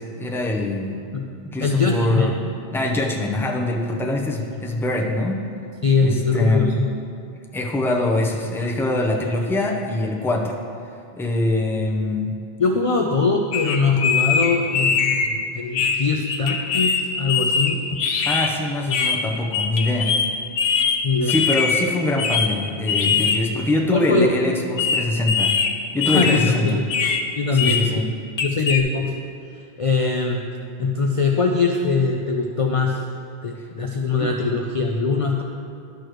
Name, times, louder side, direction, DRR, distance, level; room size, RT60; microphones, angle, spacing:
voice 1, 0.0-1.0 1.4-2.3 2.7-5.4 6.0-6.7 7.5-10.6 11.2-12.3 18.2-20.1 21.2-25.6 25.9-26.7 27.5-28.1 34.2-34.3, left 2 dB, 5° left, -1 dB, 0.6 m, -23 dB
voice 2, 1.6-2.4 4.5-4.6 5.8-6.9 12.6-18.0 18.9-19.0 21.0-21.4 23.9-24.3 26.1-26.8 27.4-28.0 28.4-29.2 29.8-30.4 30.8-33.0 33.4-35.4, left 4 dB, 50° left, 2 dB, 0.4 m, -22 dB
sound 1, 13.5-15.3 15.7-18.5 18.9-19.2 19.5-20.3 20.6-21.8 22.2-22.5 22.9-23.4 24.8-25.7 26.0-26.5 26.9-27.2 27.6-27.8 28.4-28.8, left 6 dB, 65° left, 0.8 m, -22 dB
11.5 x 6.3 x 3.1 m, 2.5 s
omnidirectional pair, 1.0 m